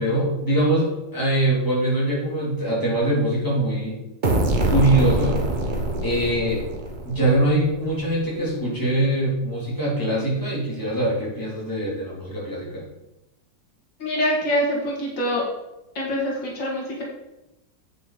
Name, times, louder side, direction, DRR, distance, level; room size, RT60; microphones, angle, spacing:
voice 1, 0.0-4.0 4.6-5.4 6.0-6.6 7.1-12.8, right 1 dB, 10° left, -6 dB, 3.4 m, -23 dB
sound 1, 4.2-7.9, right 1 dB, 30° right, 1.0 m, -24 dB
voice 2, 14.0-15.4 15.9-17.0, equal, 80° left, -3 dB, 2.9 m, -24 dB
8.4 x 6.4 x 5.1 m, 0.92 s
omnidirectional pair, 2.0 m